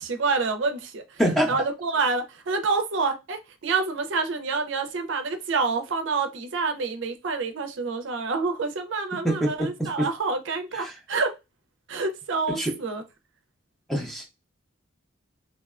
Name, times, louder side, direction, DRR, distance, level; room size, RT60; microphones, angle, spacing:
voice 1, 0.0-1.0 1.5-11.3 11.9-13.0, right 4 dB, 65° right, 0.5 m, -27 dB
voice 2, 1.2-1.6 9.2-10.1 10.7-10.9 12.5-12.7 13.9-14.3, right 1 dB, ahead, 0.5 m, -25 dB
2.7 x 2.1 x 2.4 m
head